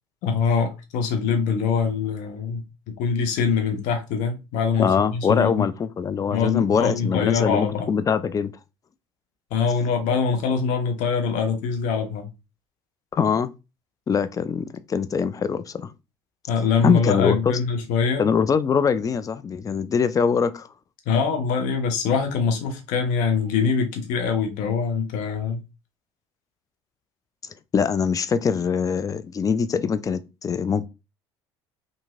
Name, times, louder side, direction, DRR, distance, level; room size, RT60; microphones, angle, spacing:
voice 1, 0.2-2.6 3.0-5.6 6.3-7.9 9.5-12.3 16.5-18.2 21.1-25.6, left 5 dB, 65° left, 0.8 m, -23 dB
voice 2, 4.8-8.5 13.1-13.5 14.1-15.9 16.8-17.6 18.2-20.7 27.7-30.8, left 6 dB, 25° left, 0.3 m, -23 dB
2.9 x 2.6 x 2.4 m
hypercardioid pair, 65°, 14 cm